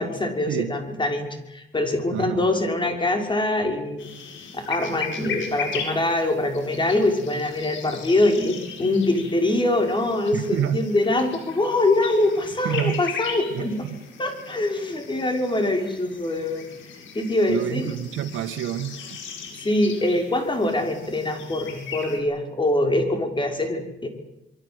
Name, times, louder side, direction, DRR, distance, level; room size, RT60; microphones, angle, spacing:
voice 1, 0.0-4.1 4.5-13.9 14.2-16.7 17.1-17.9 19.6-24.1, left 2 dB, 25° left, 4 dB, 6.1 m, -24 dB
voice 2, 2.1-2.5 10.3-10.8 12.6-13.0 13.5-14.0 17.5-19.2, right 10 dB, 80° right, 9 dB, 1.9 m, -28 dB
sound 1, 4.0-22.2, left 6 dB, 75° left, 7.7 m, -38 dB
26.0 x 23.5 x 8.2 m, 0.91 s
cardioid pair, 90°, 20 cm